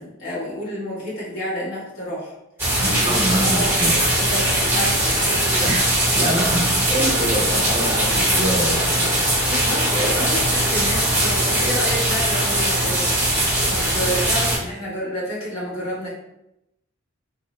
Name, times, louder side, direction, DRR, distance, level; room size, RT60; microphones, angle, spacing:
voice 1, 0.0-2.3 2.9-3.6 4.2-5.8 9.4-13.1 13.7-16.1, equal, 65° left, -7 dB, 1.2 m, -29 dB
sound 1, 2.6-14.6, right 1 dB, 10° right, 0.8 m, -20 dB
voice 2, 2.8-4.1 5.6-9.1, right 1 dB, 25° right, -3 dB, 0.4 m, -25 dB
2.6 x 2.0 x 2.9 m, 0.87 s
head